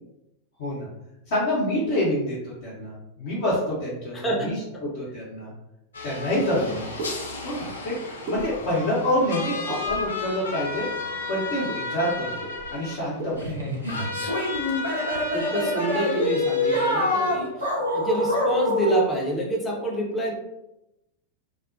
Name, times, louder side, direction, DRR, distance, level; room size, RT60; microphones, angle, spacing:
voice 1, 1.3-4.5 5.0-5.5 6.0-6.8 7.4-7.9 8.3-10.9 11.3-12.4 12.7-14.2, left 1 dB, 50° left, -9 dB, 0.8 m, -27 dB
voice 2, 4.1-4.5 4.7-4.8 6.4-6.8 14.2-14.3 15.1-20.3, right 1 dB, 15° left, -3 dB, 0.7 m, -28 dB
sound 1, 5.9-17.4, left 3 dB, 70° left, 0.4 m, -34 dB
sound 2, 6.5-6.7 7.0-7.1 8.3-8.9 9.7-10.2 11.7-11.8 12.1-12.2 12.4-12.8 13.2-13.5, right 2 dB, 40° right, 0.5 m, -34 dB
sound 3, 13.4-19.1, left 1 dB, 85° right, 0.7 m, -25 dB
2.3 x 2.1 x 2.6 m, 0.90 s
figure-of-eight pair, 90°, 0 cm